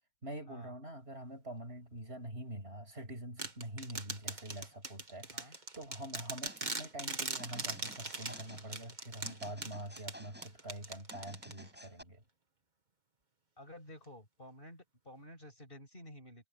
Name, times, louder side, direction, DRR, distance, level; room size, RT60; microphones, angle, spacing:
voice 1, 0.2-12.2, right 1 dB, 70° right, 6.9 m, -45 dB
sound 1, 3.4-11.9, right 3 dB, 40° right, 2.1 m, -41 dB
sound 2, 6.5-6.8 7.4-8.7 9.2-10.5 11.1-12.0, equal, 10° right, 6.8 m, -53 dB
voice 2, 13.6-16.5, left 1 dB, 55° left, 7.1 m, -52 dB
omnidirectional pair, 1.1 m